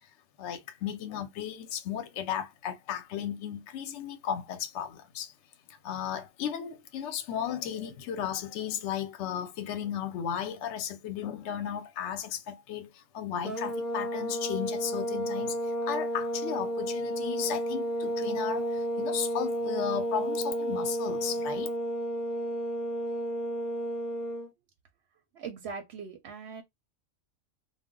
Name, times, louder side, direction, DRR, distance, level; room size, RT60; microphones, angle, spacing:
voice 1, 0.4-5.3 5.8-21.7, left 9 dB, 65° left, 0.8 m, -35 dB
sound 1, 13.4-24.5, right 1 dB, ahead, 0.4 m, -32 dB
voice 2, 25.3-26.6, right 5 dB, 65° right, 0.7 m, -40 dB
2.3 x 2.1 x 3.5 m
omnidirectional pair, 1.4 m